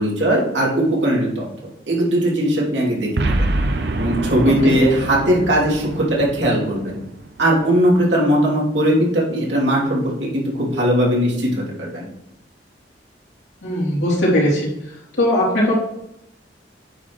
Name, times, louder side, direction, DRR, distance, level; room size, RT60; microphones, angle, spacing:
voice 1, 0.0-1.4 1.9-3.5 4.0-7.0 7.4-12.0, equal, 85° right, -4 dB, 2.9 m, -19 dB
Boom, 3.2-7.6, right 2 dB, 65° right, 0.7 m, -25 dB
voice 2, 13.6-14.7 15.2-15.7, left 1 dB, 90° left, -6 dB, 3.1 m, -18 dB
8.8 x 6.0 x 3.1 m, 0.79 s
head